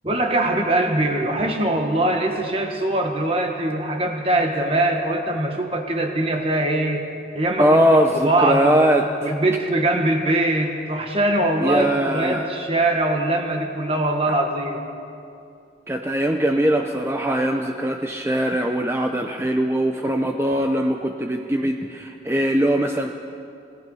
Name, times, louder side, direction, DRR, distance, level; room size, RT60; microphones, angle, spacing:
voice 1, 0.0-7.1 7.3-7.8 8.1-8.8 9.2-14.8, right 1 dB, 30° right, 3 dB, 1.6 m, -22 dB
voice 2, 7.6-9.1 11.6-12.4 15.9-23.2, right 1 dB, 15° right, 3 dB, 0.7 m, -21 dB
28.0 x 17.5 x 5.6 m, 2.5 s
head